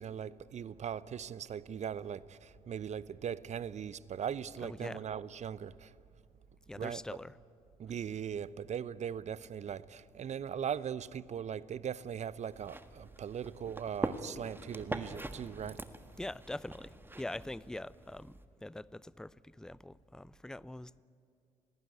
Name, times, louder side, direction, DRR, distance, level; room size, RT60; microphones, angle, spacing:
voice 1, 0.0-5.9 6.7-7.0 7.8-15.8, right 8 dB, 45° right, 0.8 m, -39 dB
voice 2, 4.6-5.0 6.7-7.3 16.2-21.0, left 1 dB, 5° left, 0.6 m, -43 dB
sound 1, 12.5-18.4, right 1 dB, 10° right, 1.6 m, -43 dB
28.5 x 18.5 x 9.7 m
hypercardioid pair, 50°, 17 cm